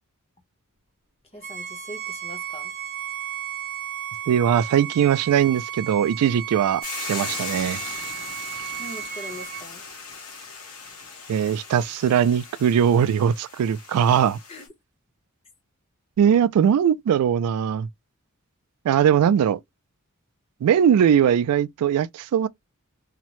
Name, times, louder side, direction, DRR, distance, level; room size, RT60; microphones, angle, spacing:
voice 1, 1.3-2.7 8.8-9.8 14.5-14.7, equal, 25° left, 0.8 m, -41 dB
Bowed string instrument, 1.4-9.7, right 10 dB, 35° right, 0.7 m, -34 dB
voice 2, 4.3-7.8 11.3-14.4 16.2-17.9 18.8-19.6 20.6-22.5, right 8 dB, 90° right, 0.3 m, -20 dB
Hiss / Boiling, 6.8-14.7, left 5 dB, 75° left, 0.9 m, -38 dB
2.8 x 2.1 x 2.9 m
head